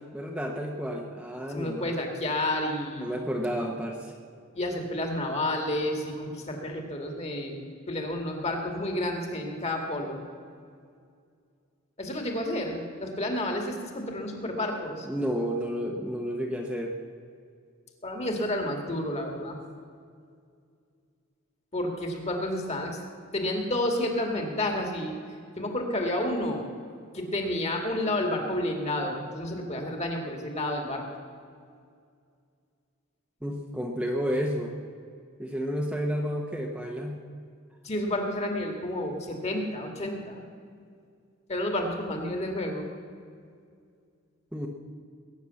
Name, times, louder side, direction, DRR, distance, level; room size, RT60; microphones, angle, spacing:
voice 1, 0.1-1.9 3.0-4.1 15.1-17.0 33.4-34.7 35.4-37.2 44.5-44.7, equal, 5° right, -1 dB, 1.0 m, -31 dB
voice 2, 1.5-3.2 4.5-10.2 12.0-15.1 18.0-19.6 21.7-23.0 23.3-25.2 25.6-26.6 27.1-31.0 37.8-40.4 41.5-42.9, left 1 dB, 30° left, 3 dB, 2.2 m, -30 dB
20.5 x 9.3 x 7.1 m, 2.3 s
head